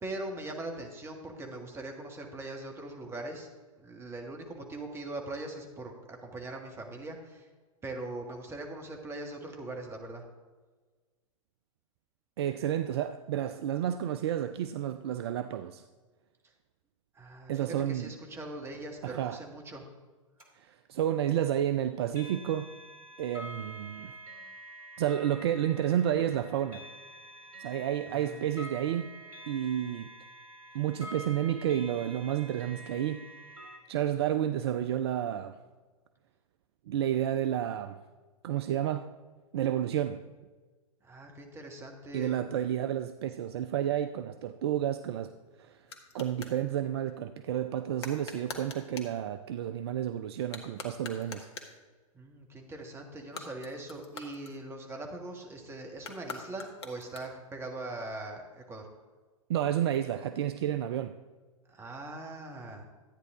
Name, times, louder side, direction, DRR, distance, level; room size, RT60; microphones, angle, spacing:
voice 1, 0.0-3.5 3.8-7.5 7.8-10.2 17.1-19.8 28.1-28.7 41.0-42.4 52.1-58.9 61.7-62.8, right 2 dB, 15° right, 2 dB, 1.7 m, -41 dB
voice 2, 12.4-15.8 17.5-18.1 19.0-19.4 20.5-22.7 23.2-24.2 25.0-26.8 27.6-29.1 29.5-30.1 30.7-33.3 33.9-35.6 36.9-38.0 38.4-39.1 39.5-40.2 42.1-45.8 46.1-51.5 59.5-61.1, right 11 dB, 50° right, 11 dB, 0.5 m, -31 dB
sound 1, 20.4-20.5 22.1-33.8, equal, 80° right, 2.1 m, -47 dB
sound 2, 44.9-46.6 48.0-49.2 50.4-51.8 53.2-55.0 56.0-57.6, left 4 dB, 50° left, 1.6 m, -45 dB
13.5 x 9.3 x 3.7 m, 1.3 s
figure-of-eight pair, 105°, 18 cm